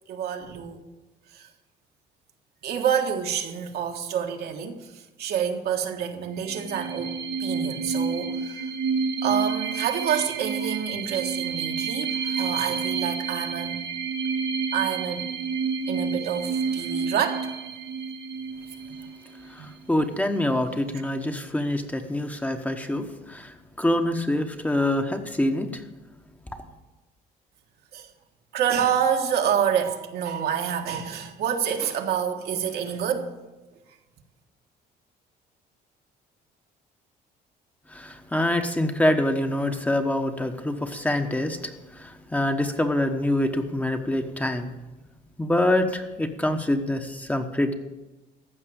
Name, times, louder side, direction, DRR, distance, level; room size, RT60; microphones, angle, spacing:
voice 1, 0.1-0.8 1.3-1.4 2.6-4.9 5.2-7.1 7.4-8.6 9.2-13.8 14.7-15.3 15.9-17.6 19.6-19.7 27.9-28.1 28.5-33.3, right 8 dB, 70° right, 1.6 m, -27 dB
sound 1, 6.4-19.8, right 5 dB, 85° right, 1.5 m, -30 dB
voice 2, 19.5-25.8 37.9-41.7 42.0-44.7 45.4-47.7, left 1 dB, 10° left, 1.1 m, -25 dB
15.0 x 6.0 x 8.7 m
cardioid pair, 110°, 17 cm